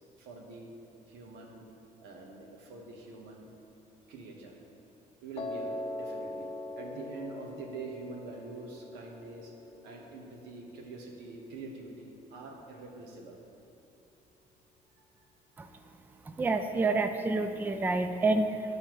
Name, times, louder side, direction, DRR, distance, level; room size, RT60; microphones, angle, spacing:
voice 1, 0.1-0.7 1.1-1.7 2.0-3.5 4.1-4.6 5.2-6.5 6.8-9.5 9.8-13.4 15.0-15.2, right 3 dB, 85° right, 0 dB, 1.2 m, -45 dB
Piano, 5.4-11.5, left 2 dB, 35° left, 0.6 m, -42 dB
voice 2, 16.3-18.8, right 3 dB, 10° right, 7 dB, 0.3 m, -28 dB
11.0 x 5.5 x 3.0 m, 2.8 s
cardioid pair, 110°, 17 cm